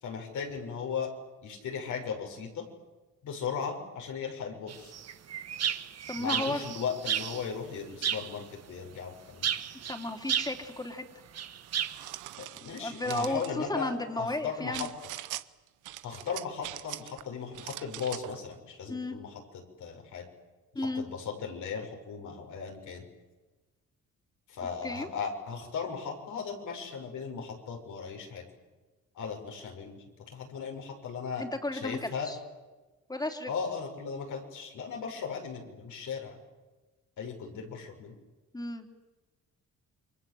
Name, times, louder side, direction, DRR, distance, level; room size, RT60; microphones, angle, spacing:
voice 1, 0.0-1.1 1.4-2.6 3.2-4.9 6.2-9.5 12.5-14.9 16.0-19.3 19.8-20.2 20.8-23.0 24.5-28.4 29.1-30.0 30.3-31.4 31.7-32.3 33.5-36.4 37.2-38.1, left 6 dB, 75° left, 2 dB, 6.6 m, -37 dB
sound 1, 4.7-7.5 8.0-8.4 9.4-10.7 11.3-12.0, right 9 dB, 55° right, 1.5 m, -33 dB
voice 2, 6.1-6.6 9.9-11.0 12.8-14.9 18.9-19.2 20.8-21.1 24.8-25.1 31.4-32.4 33.1-33.5 38.5-38.9, left 2 dB, 15° left, 4 dB, 3.6 m, -34 dB
sound 2, 11.7-13.5 14.7-15.5 15.9-17.2 17.5-18.4, right 15 dB, 90° right, 1.0 m, -42 dB
29.0 x 24.0 x 7.9 m, 1.2 s
cardioid pair, 90°, 30 cm